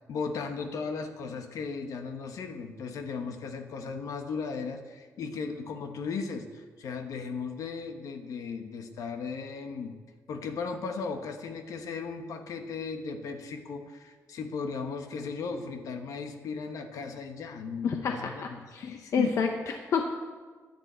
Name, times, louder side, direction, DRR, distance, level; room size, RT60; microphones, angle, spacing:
voice 1, 0.1-10.0 10.3-19.4, left 5 dB, 80° left, 6 dB, 1.3 m, -36 dB
voice 2, 17.8-18.3 18.7-20.1, left 5 dB, 60° left, 4 dB, 0.9 m, -29 dB
16.0 x 11.0 x 4.5 m, 1.4 s
wide cardioid pair, 160°, 6 cm